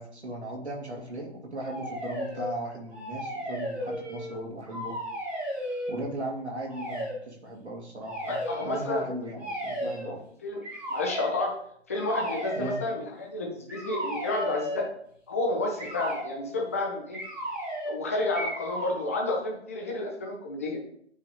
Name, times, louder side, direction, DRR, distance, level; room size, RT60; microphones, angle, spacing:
voice 1, 0.0-4.9 5.9-10.2 12.6-12.8, right 1 dB, 70° right, -1 dB, 2.2 m, -37 dB
sound 1, 1.6-2.5 2.9-4.4 4.7-6.0 6.7-7.2 8.0-8.7 9.4-10.1 10.6-11.4 11.9-12.9 13.7-14.9 15.8-16.3 17.1-18.0 18.3-19.0, equal, 5° right, 1.4 m, -34 dB
voice 2, 8.3-9.1 10.0-10.1 10.4-10.6 10.9-11.5 11.9-14.9 15.3-17.2 17.8-20.8, left 2 dB, 15° left, 0 dB, 0.6 m, -30 dB
8.8 x 3.8 x 3.0 m, 0.66 s
figure-of-eight pair, 140°, 35 cm